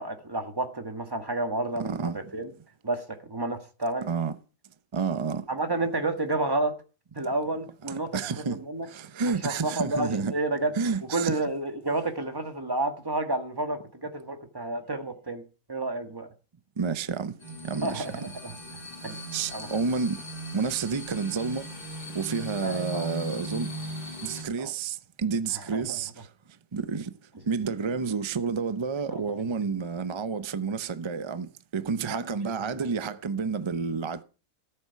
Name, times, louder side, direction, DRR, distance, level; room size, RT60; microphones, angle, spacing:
voice 1, 0.0-2.5 2.8-4.1 5.5-6.7 7.1-8.2 8.5-8.9 9.2-10.7 11.1-15.4 15.7-16.3 17.8-18.5 19.0-19.2 19.5-19.7 22.6-23.1 24.6-24.7 25.7-26.0 29.1-29.4 31.9-32.8, right 2 dB, 15° right, 1.6 m, -30 dB
voice 2, 1.8-2.2 4.1-4.3 4.9-5.5 7.9-8.6 8.9-10.3 10.7-11.4 16.8-17.4 17.6-18.1 19.3-20.2 20.5-21.7 22.1-23.7 24.2-26.3 26.7-27.1 27.5-34.2, right 5 dB, 35° right, 0.4 m, -30 dB
sound 1, 17.4-24.4, equal, 35° left, 3.5 m, -38 dB
13.5 x 7.7 x 5.8 m
omnidirectional pair, 1.6 m